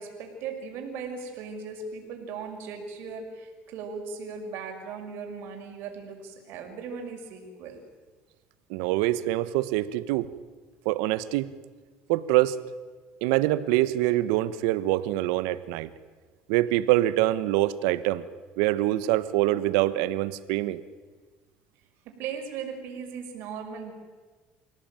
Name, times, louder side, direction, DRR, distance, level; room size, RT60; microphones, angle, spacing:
voice 1, 0.0-7.8 22.0-23.9, right 5 dB, 70° right, 4 dB, 5.7 m, -38 dB
voice 2, 8.7-10.3 10.8-11.5 12.1-12.6 13.2-15.9 16.5-18.2 18.6-20.8, right 15 dB, 85° right, 15 dB, 1.2 m, -25 dB
28.0 x 17.5 x 9.1 m, 1.4 s
supercardioid pair, 100°, 4 cm